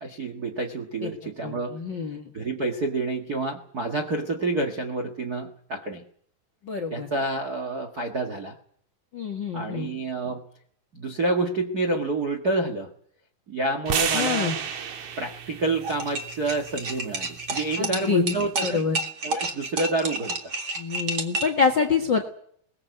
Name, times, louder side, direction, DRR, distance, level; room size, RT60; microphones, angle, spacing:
voice 1, 0.0-1.7 2.3-6.0 6.9-8.6 9.5-10.5 10.9-12.9 13.5-14.5 15.2-18.8 19.2-20.5, right 2 dB, 85° right, 3 dB, 0.8 m, -28 dB
voice 2, 1.4-2.3 6.6-7.1 9.1-9.9 14.1-14.5 17.8-18.2 18.6-19.0 20.8-22.3, left 5 dB, 65° left, 7 dB, 1.1 m, -26 dB
sound 1, 13.9-18.1, right 7 dB, 55° right, 2.4 m, -32 dB
sound 2, 15.8-21.6, right 2 dB, 40° right, 1.6 m, -30 dB
22.0 x 19.5 x 8.1 m, 0.64 s
omnidirectional pair, 4.8 m